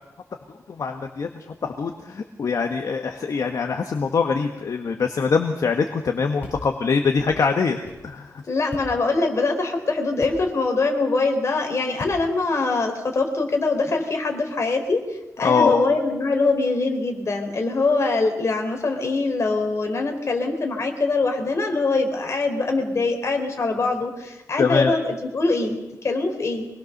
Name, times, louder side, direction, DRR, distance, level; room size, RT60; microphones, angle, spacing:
voice 1, 0.5-8.4 15.4-15.8 24.6-24.9, left 5 dB, 65° left, 4 dB, 1.6 m, -23 dB
sound 1, 6.4-6.6 7.2-7.3 7.8-8.0 8.7-8.9 10.2-10.4 12.0-12.2, left 2 dB, 25° left, 7.7 m, -36 dB
voice 2, 8.5-15.0 15.4-26.7, left 3 dB, 50° left, 3 dB, 3.8 m, -23 dB
24.5 x 20.5 x 6.7 m, 1.0 s
wide cardioid pair, 150°, 6 cm